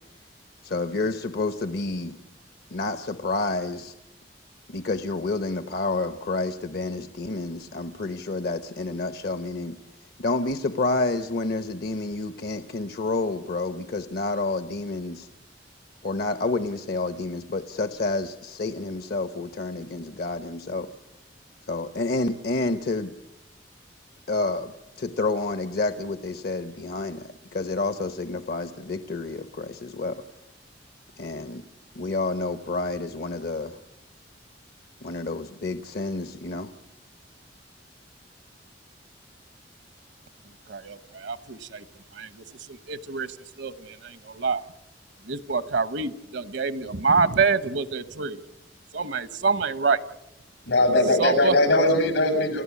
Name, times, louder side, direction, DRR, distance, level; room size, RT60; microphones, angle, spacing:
voice 1, 0.6-2.2 2.7-3.9 4.7-9.8 10.2-15.3 16.0-20.9 21.7-23.1 24.3-24.7 25.0-30.2 31.2-31.6 31.9-33.8 35.0-36.7, left 3 dB, 60° left, 0.9 m, -29 dB
voice 2, 40.7-41.8 42.2-44.6 45.3-48.4 48.9-50.0 51.2-51.5, right 4 dB, 70° right, 1.0 m, -26 dB
voice 3, 50.7-52.6, left 1 dB, 90° left, 7.4 m, -20 dB
29.5 x 16.0 x 8.4 m
head